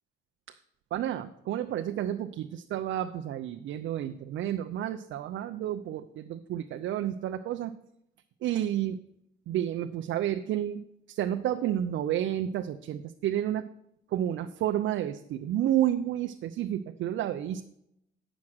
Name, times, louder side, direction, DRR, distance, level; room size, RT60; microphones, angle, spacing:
voice 1, 0.9-7.7 8.4-9.0 9.5-10.8 11.1-13.7 14.1-17.6, right 11 dB, 75° right, 6 dB, 0.6 m, -30 dB
9.6 x 6.2 x 6.1 m, 0.77 s
cardioid pair, 90°, 20 cm